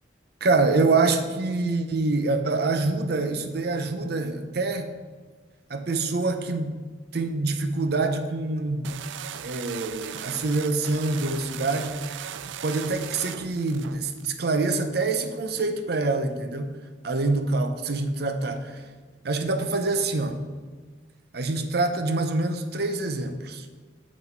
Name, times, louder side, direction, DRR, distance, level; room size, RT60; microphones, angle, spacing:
voice 1, 0.4-4.9 5.7-6.8 7.1-9.0 9.4-16.8 17.0-18.8 19.2-20.4 21.3-23.7, right 3 dB, 60° right, 8 dB, 0.7 m, -26 dB
sound 1, 8.8-14.3, right 10 dB, 85° right, 0.3 m, -38 dB
7.4 x 6.0 x 4.6 m, 1.5 s
head